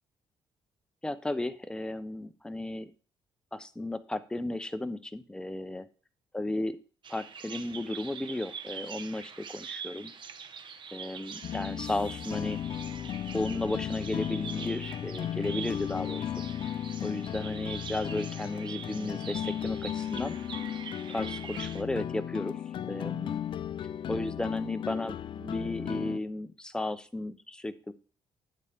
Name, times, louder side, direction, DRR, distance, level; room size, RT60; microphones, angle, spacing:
voice 1, 1.0-2.9 3.5-5.8 6.3-6.8 7.1-10.1 10.9-12.6 13.3-16.3 17.0-20.3 21.1-22.6 22.8-23.4 24.1-27.9, left 2 dB, 10° left, 11 dB, 0.8 m, -34 dB
Bird vocalization bird call bird song, 7.0-21.8, right 7 dB, 55° right, 1.0 m, -44 dB
sound 1, 11.4-26.2, left 10 dB, 60° left, 0.5 m, -35 dB
11.5 x 8.1 x 3.6 m, 0.39 s
cardioid pair, 90°, 10 cm